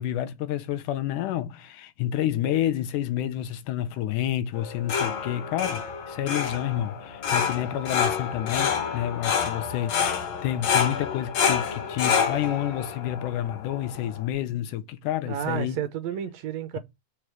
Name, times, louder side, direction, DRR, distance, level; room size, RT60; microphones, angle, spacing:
voice 1, 0.0-15.8, left 12 dB, 85° left, 2.3 m, -29 dB
sound 1, 4.5-14.3, left 7 dB, 65° left, 2.4 m, -28 dB
voice 2, 15.3-16.8, right 10 dB, 70° right, 1.8 m, -31 dB
5.3 x 4.9 x 5.9 m
omnidirectional pair, 3.6 m